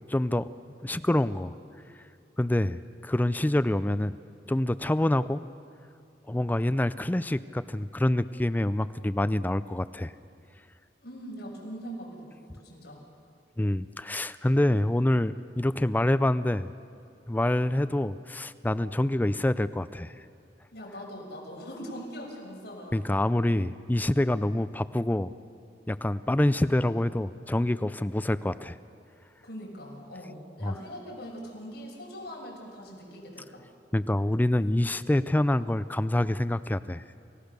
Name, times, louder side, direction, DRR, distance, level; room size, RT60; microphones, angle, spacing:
voice 1, 0.1-0.5 0.8-1.5 2.4-4.1 4.5-5.4 6.3-10.1 13.6-16.7 17.3-20.1 22.9-25.3 25.9-28.8 30.6-30.7 33.9-37.0, left 1 dB, 10° left, 14 dB, 0.4 m, -26 dB
voice 2, 11.0-13.0 20.7-23.0 29.4-33.6, equal, 65° left, -2 dB, 6.0 m, -41 dB
29.0 x 16.5 x 6.7 m, 2.6 s
head